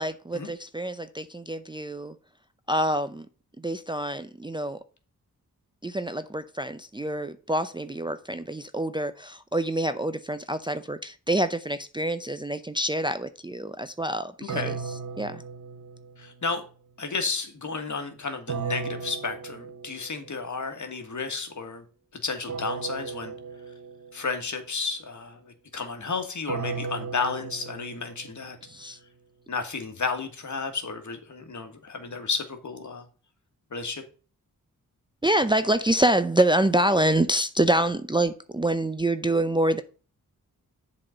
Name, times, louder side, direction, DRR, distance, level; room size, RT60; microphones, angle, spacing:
voice 1, 0.0-2.1 2.7-3.3 3.6-4.8 5.8-14.8 15.2-15.4 28.7-29.0 35.2-39.8, right 1 dB, 15° right, 0.5 m, -26 dB
sound 1, 14.5-16.5 18.5-20.3 22.5-24.3 26.5-28.7, right 5 dB, 50° right, 0.8 m, -36 dB
voice 2, 16.2-16.6 17.0-21.8 22.2-23.3 24.1-28.6 29.5-33.1 33.7-34.0, left 4 dB, 55° left, 1.7 m, -32 dB
7.5 x 4.2 x 6.4 m
cardioid pair, 70°, 36 cm